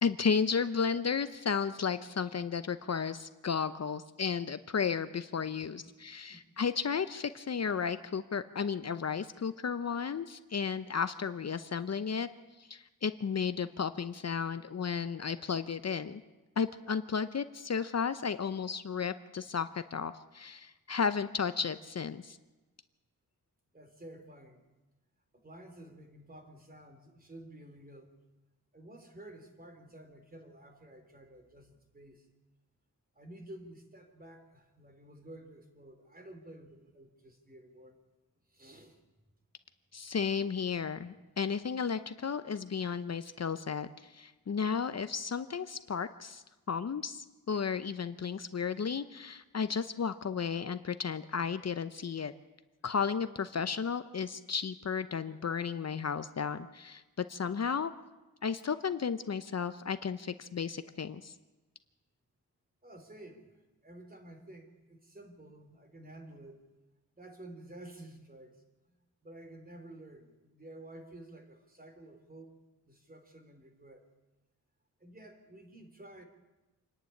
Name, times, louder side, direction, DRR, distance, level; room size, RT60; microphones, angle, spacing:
voice 1, 0.0-12.3 12.6-16.2 16.6-22.4 39.9-52.3 52.8-57.9 58.4-61.3, left 6 dB, 50° left, 11 dB, 0.8 m, -33 dB
voice 2, 23.7-24.6 25.3-28.1 28.7-32.3 33.1-38.0 38.5-39.0 62.8-63.5 63.8-66.6 67.1-68.9 69.2-72.5 72.8-74.0 75.0-76.2, right 1 dB, 25° right, 5 dB, 3.3 m, -51 dB
26.5 x 10.5 x 9.9 m, 1.1 s
wide cardioid pair, 100°, 34 cm